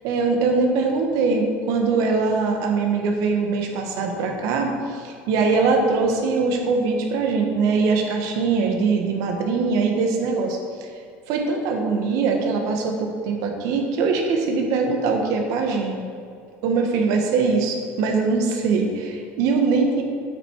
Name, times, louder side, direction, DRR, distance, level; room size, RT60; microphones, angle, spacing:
voice 1, 0.0-10.9 11.3-16.0 16.6-20.0, right 4 dB, 70° right, 3 dB, 1.2 m, -22 dB
8.2 x 5.4 x 4.6 m, 2.3 s
supercardioid pair, 95°, 6 cm